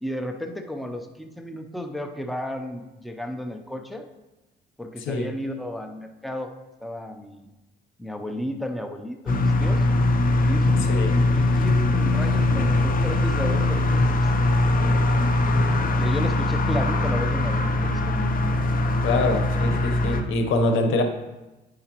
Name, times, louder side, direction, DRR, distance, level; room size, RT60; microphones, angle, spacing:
voice 1, 0.0-4.1 4.8-6.5 6.8-7.5 8.0-9.8 10.4-10.8 11.1-14.3 16.0-18.3, left 1 dB, ahead, 5 dB, 0.6 m, -33 dB
sound 1, 9.3-20.2, left 2 dB, 45° left, 0.7 m, -21 dB
voice 2, 19.0-21.0, left 2 dB, 85° left, 6 dB, 0.8 m, -24 dB
9.2 x 4.8 x 3.0 m, 1.0 s
cardioid pair, 90°, 20 cm